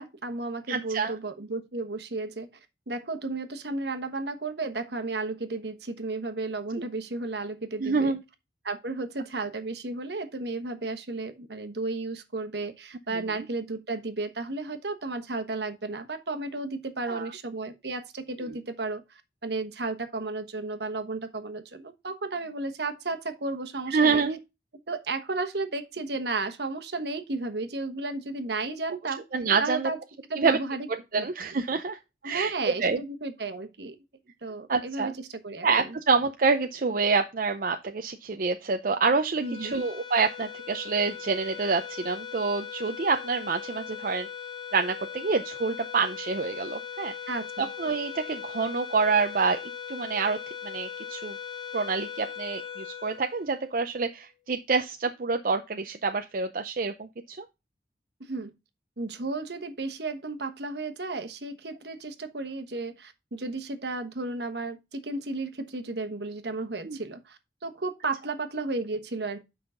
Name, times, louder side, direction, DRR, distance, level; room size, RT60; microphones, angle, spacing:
voice 1, 0.0-2.5 2.9-8.2 8.6-24.2 24.9-29.2 29.6-30.0 30.3-30.9 31.1-31.3 32.2-33.9 34.4-36.0 39.4-39.8 47.3-47.7 58.2-58.5 59.0-69.4, right 3 dB, 70° right, 1.2 m, -33 dB
voice 2, 0.7-1.1 7.8-8.2 17.1-17.3 23.9-24.4 29.3-29.9 30.4-30.6 31.1-32.0 32.2-32.5 32.8-33.0 34.7-35.1 35.6-44.3 44.7-47.1 47.6-49.6 49.9-50.4 50.6-51.4 51.7-57.4 66.9-67.0, right 4 dB, 50° right, 0.6 m, -27 dB
sound 1, 39.4-53.9, left 7 dB, 30° left, 1.7 m, -39 dB
8.0 x 5.7 x 3.7 m
head